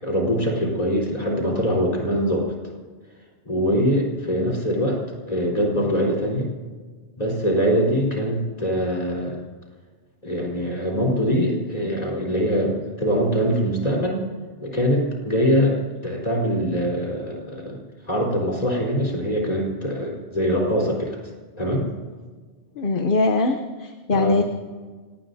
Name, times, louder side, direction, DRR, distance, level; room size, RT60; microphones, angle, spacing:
voice 1, 0.0-2.5 3.4-6.5 7.2-9.4 10.2-14.2 14.6-17.8 18.1-21.2 21.6-21.8 24.1-24.4, equal, 35° left, -2 dB, 4.4 m, -23 dB
voice 2, 22.8-24.4, left 2 dB, 50° left, 6 dB, 1.0 m, -22 dB
28.0 x 18.5 x 2.8 m, 1.4 s
omnidirectional pair, 1.2 m